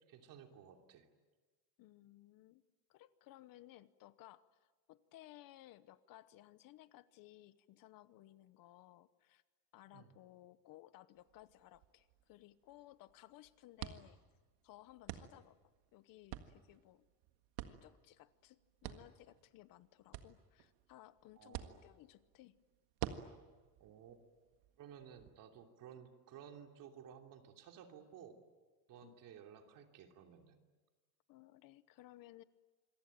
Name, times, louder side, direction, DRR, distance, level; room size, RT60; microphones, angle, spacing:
voice 1, 0.1-1.0 9.9-10.1 21.4-21.8 23.8-24.2 24.8-28.4 28.9-30.6, right 8 dB, 50° right, 3 dB, 3.0 m, -56 dB
voice 2, 1.8-2.6 2.9-9.4 9.7-14.2 14.6-15.6 15.9-17.1 17.7-22.6 29.0-29.2 31.3-32.4, left 15 dB, 55° left, 15 dB, 1.0 m, -60 dB
sound 1, 11.1-25.3, right 12 dB, 90° right, 1.8 m, -51 dB
27.0 x 23.0 x 9.0 m, 1.3 s
cardioid pair, 175°, 42 cm